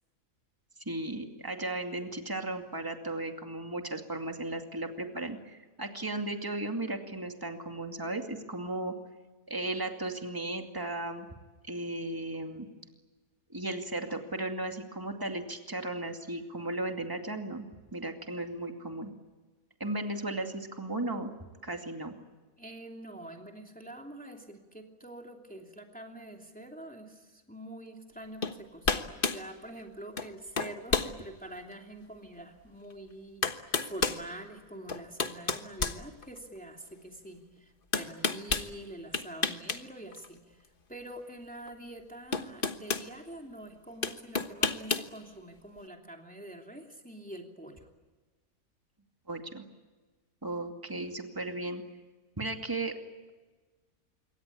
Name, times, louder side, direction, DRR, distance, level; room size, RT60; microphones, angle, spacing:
voice 1, 0.9-8.9 9.5-11.3 11.6-12.7 13.5-19.1 19.8-21.3 21.6-22.1 49.3-49.6 50.4-51.8 52.4-52.9, right 2 dB, 15° right, 4 dB, 2.4 m, -35 dB
voice 2, 22.6-47.9, right 1 dB, 5° left, 2 dB, 2.9 m, -46 dB
sound 1, 28.4-28.6 28.8-29.4 30.2-30.3 30.6-31.1 31.7-31.8 32.9-33.0 33.4-34.2 34.9-36.6 37.9-38.7 39.1-39.8 40.1-40.3 41.7-41.8 42.3-43.1 44.0-45.1, left 4 dB, 40° left, 1.4 m, -30 dB
26.5 x 24.0 x 8.5 m, 1.3 s
omnidirectional pair, 1.5 m